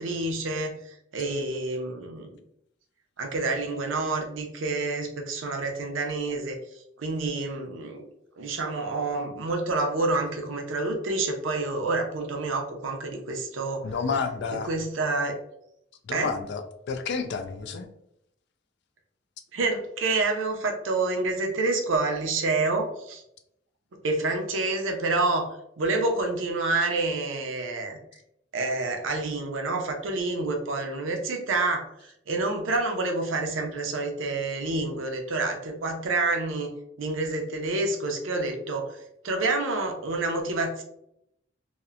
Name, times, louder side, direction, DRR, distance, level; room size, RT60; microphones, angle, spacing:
voice 1, 0.0-2.3 3.2-6.6 7.0-8.0 8.4-13.9 14.6-15.3 16.1-16.3 19.5-23.2 24.0-28.0 28.5-31.9 32.3-36.7 37.0-40.8, right 3 dB, 90° right, 4 dB, 0.5 m, -28 dB
voice 2, 13.8-14.7 16.1-17.9, left 5 dB, 60° left, 7 dB, 0.4 m, -30 dB
2.8 x 2.0 x 2.4 m, 0.76 s
head